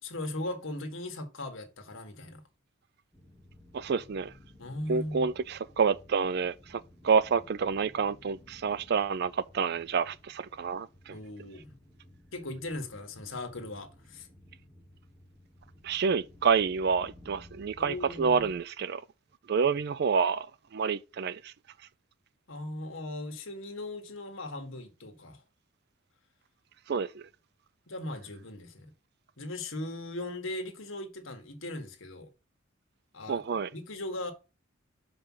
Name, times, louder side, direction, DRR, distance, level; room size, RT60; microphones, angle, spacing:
voice 1, 0.0-2.4 4.6-5.3 11.1-11.7 12.3-14.3 17.8-18.5 22.5-25.4 27.9-28.9 29.4-32.3 33.1-33.4 33.7-34.3, left 1 dB, 65° left, 1.7 m, -38 dB
sound 1, 3.1-18.5, left 1 dB, ahead, 1.2 m, -56 dB
voice 2, 3.7-4.3 4.9-11.1 15.8-19.0 19.5-20.5 20.7-21.5 26.9-27.2 33.3-33.7, right 5 dB, 50° right, 0.4 m, -28 dB
6.1 x 5.2 x 5.6 m
head